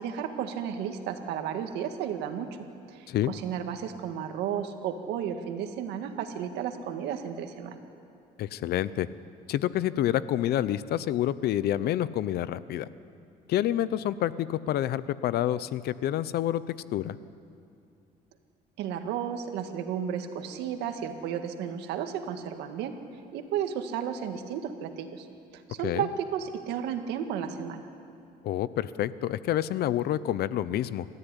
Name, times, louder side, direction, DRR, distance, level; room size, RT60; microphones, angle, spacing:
voice 1, 0.0-2.6 2.9-7.8 18.8-22.9 23.3-25.3 25.5-27.9, right 8 dB, 90° right, 6 dB, 1.9 m, -33 dB
voice 2, 8.4-9.1 9.5-12.9 13.5-16.6 16.9-17.2 25.8-26.1 28.4-31.1, left 12 dB, 70° left, 16 dB, 0.8 m, -28 dB
26.5 x 14.0 x 10.0 m, 2.6 s
cardioid pair, 110°, 17 cm